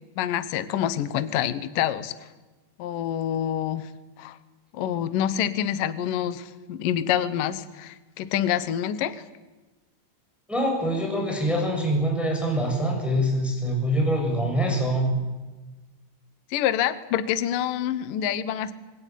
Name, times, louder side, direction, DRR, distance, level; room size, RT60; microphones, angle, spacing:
voice 1, 0.2-2.1 2.8-3.9 4.2-4.4 4.7-9.2 16.5-18.7, left 10 dB, 70° left, 12 dB, 2.2 m, -27 dB
voice 2, 10.5-15.1, equal, ahead, 0 dB, 6.9 m, -24 dB
26.5 x 21.0 x 9.3 m, 1.2 s
omnidirectional pair, 5.2 m